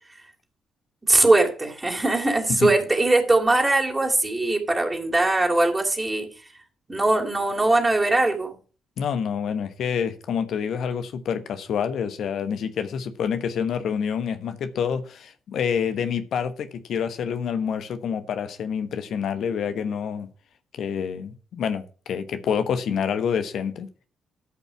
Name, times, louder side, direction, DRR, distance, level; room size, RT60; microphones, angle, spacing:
voice 1, 1.1-6.3 6.9-8.5, right 2 dB, 25° right, 3.1 m, -21 dB
voice 2, 9.0-20.3 20.7-23.9, left 7 dB, 60° left, 1.1 m, -27 dB
13.0 x 5.4 x 6.0 m
hypercardioid pair, 40°, 0 cm